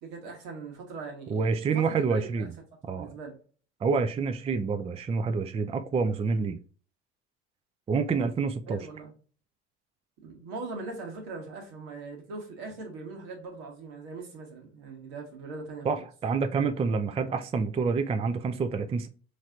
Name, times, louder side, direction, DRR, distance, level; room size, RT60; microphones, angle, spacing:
voice 1, 0.0-2.5 2.9-3.3 8.1-8.2 8.7-9.1 10.2-16.0, right 3 dB, 75° right, 1.6 m, -41 dB
voice 2, 1.3-2.6 2.9-3.1 3.8-6.6 7.9-8.9 15.8-19.1, right 5 dB, 20° right, 0.4 m, -28 dB
4.1 x 3.3 x 2.4 m
hypercardioid pair, 80°, 34 cm